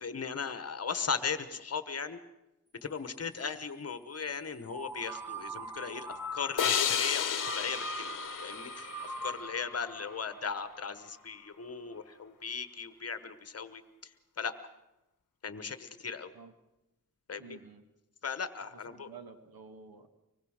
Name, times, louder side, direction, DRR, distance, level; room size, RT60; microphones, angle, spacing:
voice 1, 0.0-2.2 2.7-8.1 8.4-13.8 14.4-14.5 15.4-16.3 17.3-17.6 18.2-19.1, left 5 dB, 45° left, 11 dB, 1.2 m, -37 dB
sound 1, 4.7-11.5, equal, 5° right, 1.9 m, -42 dB
sound 2, 6.6-9.9, left 8 dB, 60° left, 1.0 m, -32 dB
voice 2, 17.4-17.8 18.7-20.1, right 5 dB, 85° right, 7 dB, 1.9 m, -51 dB
25.0 x 20.0 x 6.5 m, 0.94 s
wide cardioid pair, 175°, 35 cm